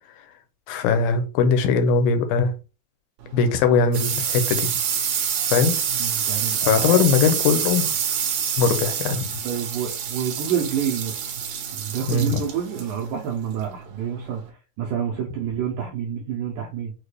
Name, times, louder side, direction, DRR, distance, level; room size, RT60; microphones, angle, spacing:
voice 1, 0.7-2.5 3.3-4.7 5.5-5.8 6.6-7.9 8.6-9.3 12.1-12.4, left 5 dB, 85° left, 2.4 m, -20 dB
sound 1, 3.2-14.5, right 8 dB, 70° right, 1.9 m, -27 dB
voice 2, 5.9-7.1 9.4-11.3 11.7-16.9, right 8 dB, 85° right, 1.7 m, -28 dB
6.3 x 2.2 x 3.2 m
omnidirectional pair, 4.3 m